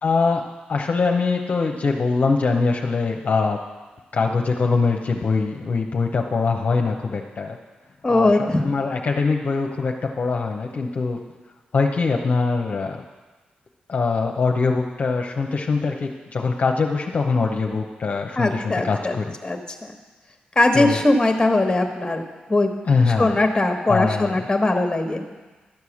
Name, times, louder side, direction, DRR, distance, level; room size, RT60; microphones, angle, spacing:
voice 1, 0.0-3.6 4.1-7.6 8.1-11.2 11.7-13.0 13.9-19.3 20.7-21.0 22.9-23.4 23.9-24.5, left 4 dB, 55° left, 1 dB, 0.8 m, -23 dB
voice 2, 8.0-8.7 18.4-19.2 19.4-19.6 20.6-22.2 22.5-22.7 23.2-25.3, left 2 dB, 20° left, 4 dB, 1.3 m, -20 dB
12.0 x 4.8 x 7.1 m, 1.3 s
cardioid pair, 60°, 3 cm